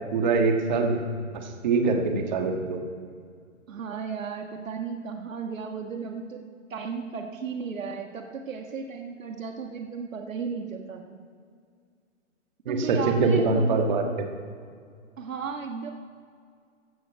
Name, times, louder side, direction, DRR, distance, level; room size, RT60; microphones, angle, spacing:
voice 1, 0.1-1.0 1.6-2.8 12.6-14.0, right 4 dB, 35° right, 3 dB, 1.6 m, -23 dB
voice 2, 3.7-6.4 6.7-11.2 12.7-13.9 15.2-15.9, right 5 dB, 85° right, 4 dB, 1.6 m, -34 dB
15.0 x 11.5 x 4.7 m, 2.1 s
hypercardioid pair, 165°, 39 cm